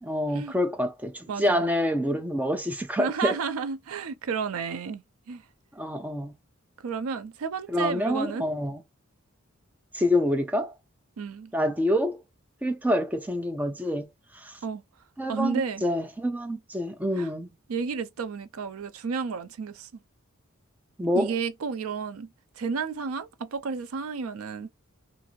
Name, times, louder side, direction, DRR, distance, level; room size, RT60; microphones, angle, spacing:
voice 1, 0.0-3.3 5.8-6.3 7.7-8.8 9.9-10.7 11.5-12.2 12.6-14.1 14.3-14.6 15.2-17.5 21.0-21.3, left 1 dB, 10° right, 0.4 m, -27 dB
voice 2, 1.3-1.7 3.0-5.4 6.8-8.5 11.2-11.5 14.6-14.8 15.3-15.8 17.2-17.3 17.7-19.9 21.1-22.3 22.6-24.7, right 5 dB, 85° right, 0.4 m, -32 dB
2.6 x 2.5 x 2.9 m
head